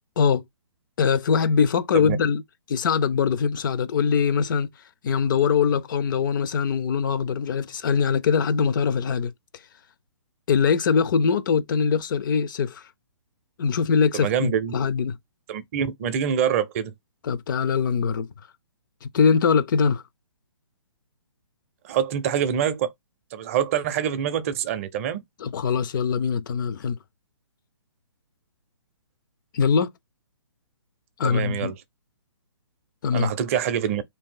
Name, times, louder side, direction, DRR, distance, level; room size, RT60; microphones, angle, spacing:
voice 1, 1.0-2.4 2.7-4.7 5.0-9.3 10.5-12.8 13.6-15.2 17.2-18.3 19.0-20.0 25.4-27.0 29.5-29.9 31.2-31.7 33.0-33.3, left 6 dB, 40° left, 0.4 m, -22 dB
voice 2, 14.1-14.7 15.5-16.9 21.8-22.9 23.3-25.2 31.2-31.7 33.1-34.0, right 9 dB, 30° right, 0.5 m, -25 dB
2.6 x 2.4 x 3.7 m
hypercardioid pair, 150°, 16 cm